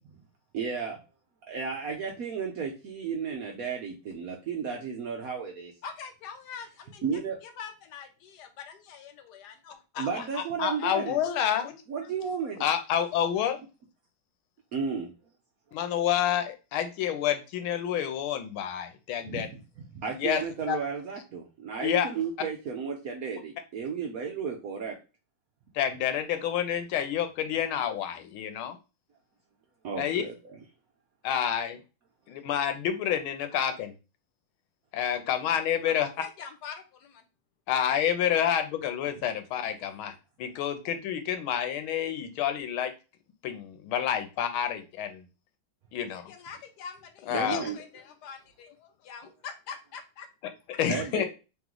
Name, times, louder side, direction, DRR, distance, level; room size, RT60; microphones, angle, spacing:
voice 1, 0.5-1.0 1.5-5.7 7.0-7.4 10.0-11.2 11.9-12.7 14.7-15.1 19.3-19.6 19.9-24.9 29.8-30.3 47.3-47.8 50.9-51.2, right 6 dB, 75° right, 0 dB, 0.8 m, -33 dB
voice 2, 5.8-10.4 10.8-10.9 35.8-37.2 46.3-48.8 49.0-50.8, left 6 dB, 75° left, 6 dB, 1.0 m, -45 dB
voice 3, 9.9-11.8 12.6-13.6 15.7-19.5 20.2-20.4 20.7-20.8 21.8-22.1 25.7-28.8 30.0-30.2 31.2-31.8 32.3-33.9 34.9-36.1 37.7-40.1 40.4-42.9 43.4-45.3 45.9-46.3 47.3-47.6 50.8-51.2, left 9 dB, 90° left, 8 dB, 1.5 m, -28 dB
3.3 x 3.0 x 3.7 m, 0.30 s
omnidirectional pair, 2.3 m